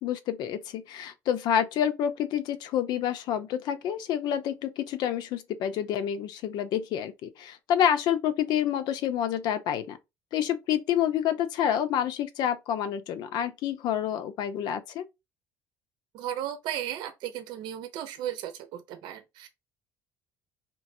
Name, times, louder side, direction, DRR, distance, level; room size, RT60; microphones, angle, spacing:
voice 1, 0.0-10.0 10.3-15.1, left 9 dB, 65° left, 0.8 m, -28 dB
voice 2, 16.1-19.5, right 11 dB, 70° right, 0.7 m, -35 dB
4.6 x 3.4 x 2.7 m
cardioid pair, 145°, 8 cm